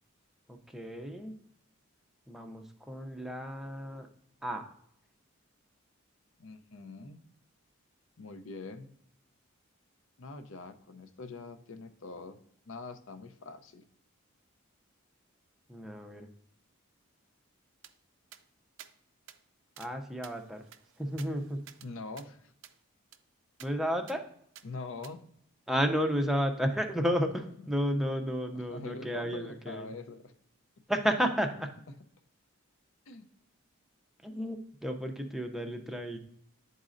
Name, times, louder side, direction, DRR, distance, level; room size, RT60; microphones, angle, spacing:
voice 1, 0.5-1.4 2.3-4.1 4.4-4.7 15.7-16.3 19.8-20.6 21.0-21.6 23.6-24.2 25.7-29.9 30.9-31.7 34.2-36.2, equal, ahead, 4 dB, 0.5 m, -32 dB
voice 2, 6.4-7.2 8.2-8.9 10.2-12.4 12.7-13.8 21.8-22.5 24.6-25.3 28.7-30.3 33.1-33.3, left 3 dB, 65° left, 9 dB, 0.5 m, -44 dB
sound 1, 17.8-17.9 18.3-18.4 18.8-18.9 19.3-19.4 19.8-19.9 20.2-21.9 22.2-22.3 22.6-22.8 23.1-23.2 23.6-23.7 24.1-24.2 24.6-24.7 25.0-25.1, right 10 dB, 60° right, 0.4 m, -52 dB
11.0 x 4.0 x 2.5 m, 0.71 s
head